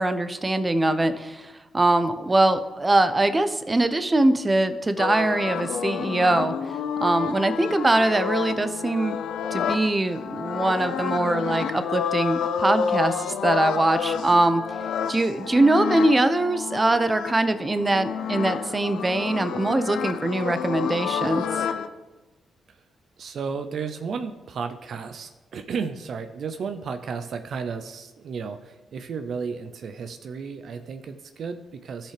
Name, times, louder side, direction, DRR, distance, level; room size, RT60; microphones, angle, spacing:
voice 1, 0.0-6.5 7.0-9.2 9.5-14.6 15.1-21.4, right 2 dB, 25° right, 10 dB, 0.7 m, -22 dB
sound 1, 5.0-21.9, left 7 dB, 75° left, 0.5 m, -29 dB
voice 2, 23.2-32.1, right 5 dB, 65° right, 8 dB, 0.5 m, -33 dB
14.0 x 5.7 x 3.3 m, 1.2 s
supercardioid pair, 55°, 0 cm